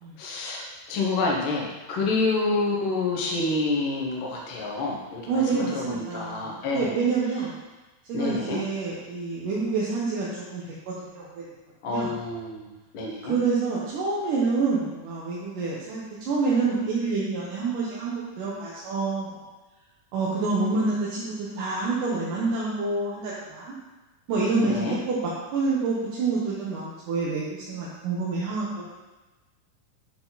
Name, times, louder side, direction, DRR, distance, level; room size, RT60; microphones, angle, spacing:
voice 1, 0.2-7.0 8.1-8.6 11.8-13.4 24.6-25.0, left 3 dB, 55° left, -2 dB, 1.5 m, -28 dB
voice 2, 5.3-7.6 8.1-11.4 11.9-12.1 13.3-19.3 20.1-23.7 24.3-25.2 25.5-28.8, right 4 dB, 75° right, -7 dB, 2.6 m, -27 dB
10.5 x 4.8 x 4.1 m, 1.2 s
omnidirectional pair, 3.9 m